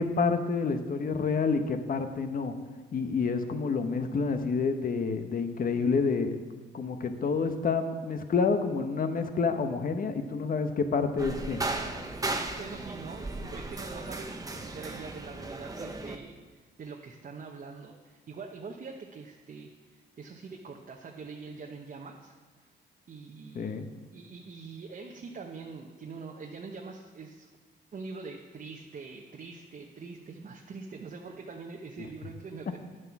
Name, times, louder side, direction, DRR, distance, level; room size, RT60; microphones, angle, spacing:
voice 1, 0.0-2.5 2.9-6.4 6.7-11.6 23.5-23.9, left 4 dB, 45° left, 8 dB, 1.0 m, -28 dB
sound 1, 11.2-16.2, right 2 dB, 20° right, 1.0 m, -36 dB
voice 2, 12.5-22.7 23.1-23.8 24.1-27.5 27.9-32.8, right 4 dB, 40° right, 0 dB, 1.0 m, -44 dB
10.0 x 7.8 x 6.0 m, 1.4 s
cardioid pair, 90°, 20 cm